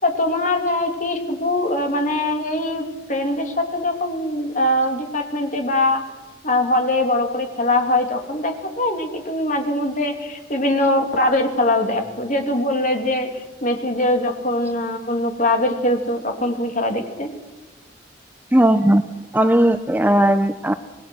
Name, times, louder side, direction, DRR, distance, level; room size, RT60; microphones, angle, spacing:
voice 1, 0.0-6.0 6.4-13.3 13.6-17.3, left 1 dB, 40° left, 5 dB, 2.9 m, -22 dB
voice 2, 18.5-19.0 19.3-20.7, right 1 dB, 10° right, 10 dB, 0.6 m, -16 dB
26.5 x 19.5 x 6.3 m, 1.1 s
head